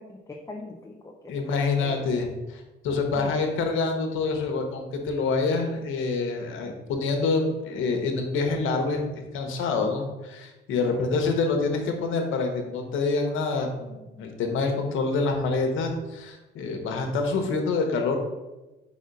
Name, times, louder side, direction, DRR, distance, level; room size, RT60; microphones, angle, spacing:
voice 1, 0.0-2.2 3.1-3.4 10.8-11.0, left 2 dB, 15° left, 0 dB, 0.7 m, -42 dB
voice 2, 1.3-2.3 2.8-18.2, left 4 dB, 85° left, 4 dB, 1.1 m, -26 dB
4.9 x 4.2 x 5.2 m, 1.1 s
cardioid pair, 90°, 20 cm